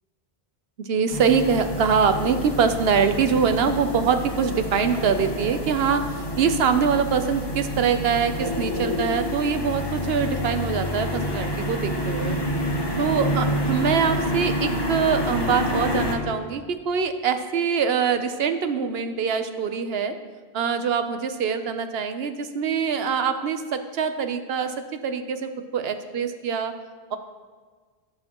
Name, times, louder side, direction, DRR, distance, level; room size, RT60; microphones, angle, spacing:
voice 1, 0.8-12.4 13.0-20.1 20.5-24.7 25.0-26.7, right 6 dB, 75° right, 8 dB, 0.9 m, -24 dB
sound 1, 1.1-16.2, left 1 dB, 25° left, 1.0 m, -28 dB
18.0 x 6.5 x 3.0 m, 1.5 s
omnidirectional pair, 1.1 m